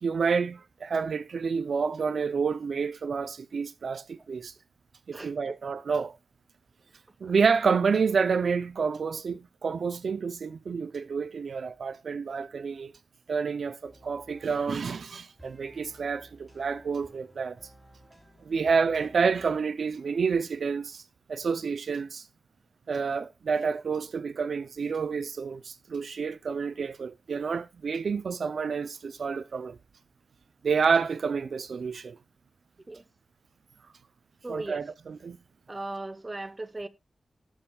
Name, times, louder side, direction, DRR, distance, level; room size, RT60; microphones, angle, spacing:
voice 1, 0.0-4.5 5.1-6.2 7.2-12.9 13.3-17.6 18.4-21.0 21.3-22.3 22.9-29.8 30.6-32.2 34.5-35.4, right 5 dB, 70° right, 0.5 m, -29 dB
sound 1, 13.9-19.6, right 1 dB, 5° right, 3.1 m, -55 dB
voice 2, 34.4-34.8 35.7-36.9, right 2 dB, 20° right, 0.8 m, -37 dB
18.0 x 7.0 x 2.3 m
wide cardioid pair, 150°, 0 cm